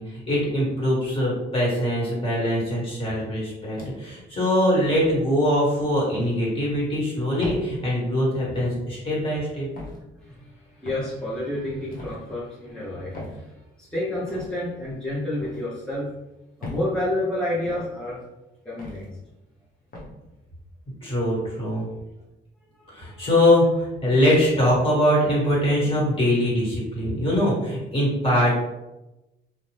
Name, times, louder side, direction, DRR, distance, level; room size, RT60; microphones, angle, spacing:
voice 1, 0.0-9.7 21.0-21.9 22.9-28.5, equal, 25° left, -4 dB, 1.4 m, -22 dB
sound 1, 3.8-4.2 4.9-5.2 6.1-6.4 7.4-7.6 8.5-8.8 9.8-10.0 10.8-11.1 11.9-12.2 13.1-13.4 14.3-14.5 15.4-15.6 16.6-16.9 17.6-17.9 18.8-19.0 19.9-20.1, left 2 dB, 45° left, 0.8 m, -37 dB
voice 2, 10.2-16.1 16.6-18.2 18.6-19.0 22.8-23.3, left 1 dB, 5° left, -9 dB, 0.7 m, -30 dB
2.4 x 2.0 x 3.1 m, 0.99 s
cardioid pair, 90°, 20 cm